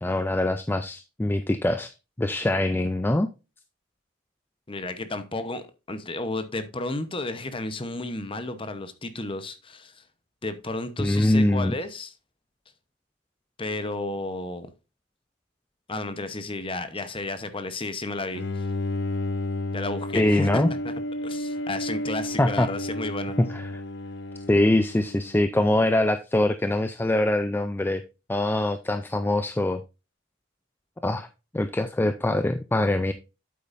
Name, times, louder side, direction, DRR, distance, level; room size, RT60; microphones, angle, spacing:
voice 1, 0.0-1.9 2.2-3.3 11.0-11.7 20.1-20.7 22.4-22.7 23.4-23.8 24.5-28.0 28.3-29.8 31.0-31.3 31.5-33.1, left 1 dB, 10° left, 0.4 m, -23 dB
voice 2, 4.7-10.0 10.4-12.1 13.6-14.7 15.9-18.7 19.7-20.9 21.2-23.4, left 2 dB, 25° left, 0.9 m, -32 dB
Bowed string instrument, 18.3-25.6, left 1 dB, 60° left, 0.7 m, -32 dB
8.4 x 8.4 x 2.6 m
head